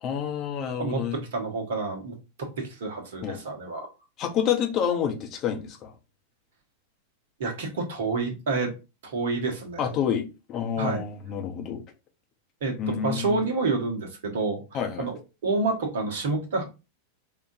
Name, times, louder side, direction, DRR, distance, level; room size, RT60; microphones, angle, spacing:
voice 1, 0.0-1.2 3.2-3.4 4.2-5.9 9.8-11.8 12.8-13.4 14.7-15.1, left 8 dB, 35° left, 0.8 m, -28 dB
voice 2, 0.8-3.9 7.4-8.7 9.0-9.9 10.8-11.0 12.6-14.6 15.0-16.6, right 3 dB, 55° right, 1.1 m, -29 dB
4.8 x 2.4 x 2.6 m
figure-of-eight pair, 90°, 0 cm